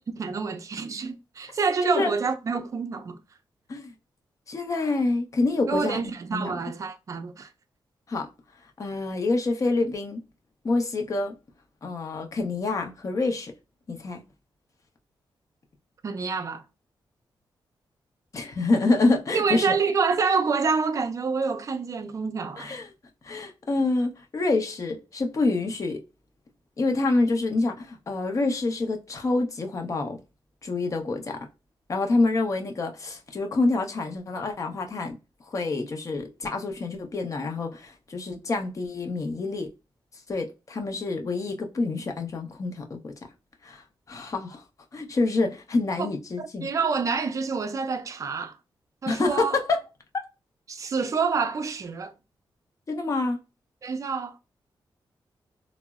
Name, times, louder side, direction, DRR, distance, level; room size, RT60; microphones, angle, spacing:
voice 1, 0.2-3.2 5.7-7.5 16.0-16.6 19.3-22.7 46.0-46.1 46.4-48.6 49.0-49.6 50.7-52.1 53.8-54.4, right 5 dB, 40° right, 0.4 m, -27 dB
voice 2, 4.5-6.6 8.1-8.3 8.8-10.2 10.6-11.3 11.8-13.5 13.9-14.2 18.3-19.8 22.6-22.9 23.2-26.0 26.8-30.2 30.6-31.4 31.9-35.2 35.4-39.7 40.3-43.1 43.6-43.8 44.1-44.6 44.9-46.7 49.1-49.8 52.9-53.4, left 3 dB, 40° left, 0.6 m, -27 dB
3.7 x 2.0 x 2.2 m
wide cardioid pair, 135°, 9 cm